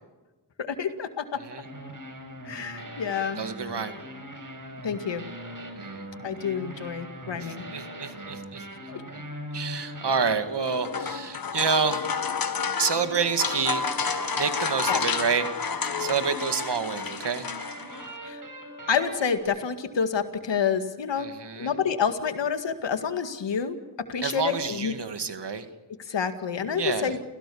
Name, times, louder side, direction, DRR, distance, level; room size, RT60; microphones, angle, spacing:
voice 1, 0.6-1.4 2.4-3.4 4.8-5.3 6.2-7.7 8.9-9.0 14.9-15.0 18.2-18.4 18.9-21.3 21.6-23.8 24.1-24.9 26.0-27.2, left 6 dB, 80° left, 8 dB, 2.1 m, -28 dB
sound 1, 1.6-11.1 12.6-19.4, right 1 dB, 45° right, 6.3 m, -41 dB
voice 2, 3.4-4.0 5.7-6.1 7.4-8.7 9.1-9.2 9.5-12.1 12.8-13.8 14.3-15.4 16.0-17.5 21.2-21.7 24.2-25.7 26.7-27.1, right 5 dB, 70° right, 9 dB, 2.3 m, -28 dB
sound 2, 10.5-18.2, left 5 dB, 55° left, 1.7 m, -30 dB
29.5 x 16.5 x 7.1 m, 1.2 s
cardioid pair, 55°, 42 cm